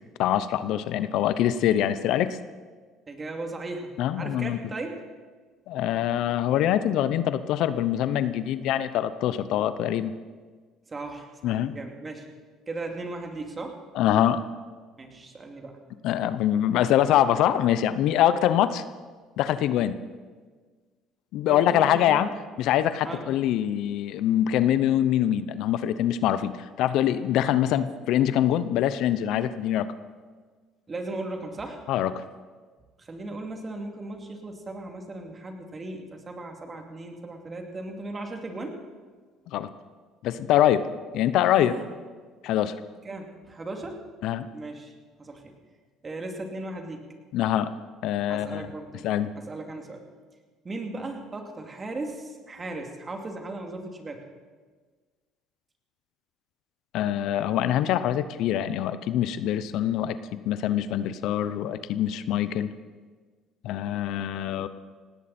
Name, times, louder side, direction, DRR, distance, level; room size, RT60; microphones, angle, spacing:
voice 1, 0.2-2.4 4.0-4.6 5.7-10.1 11.4-11.8 13.9-14.4 16.0-18.8 19.4-20.0 21.3-22.3 22.6-29.9 31.9-32.2 39.5-39.7 40.2-40.8 41.1-41.7 42.4-42.8 44.2-44.5 47.3-47.7 48.0-48.7 49.0-49.3 56.9-60.2 60.4-62.7 63.6-64.7, left 11 dB, 70° left, 13 dB, 0.7 m, -24 dB
voice 2, 3.1-5.1 10.9-12.3 12.7-13.8 15.0-15.8 21.5-22.4 23.0-23.3 30.9-31.8 33.0-38.8 41.5-41.9 43.0-44.1 44.5-44.9 45.2-45.6 46.0-47.1 48.3-49.1 49.4-50.0 50.6-54.3, right 2 dB, 30° right, 3 dB, 2.8 m, -37 dB
18.5 x 17.5 x 4.4 m, 1.5 s
supercardioid pair, 85°, 0 cm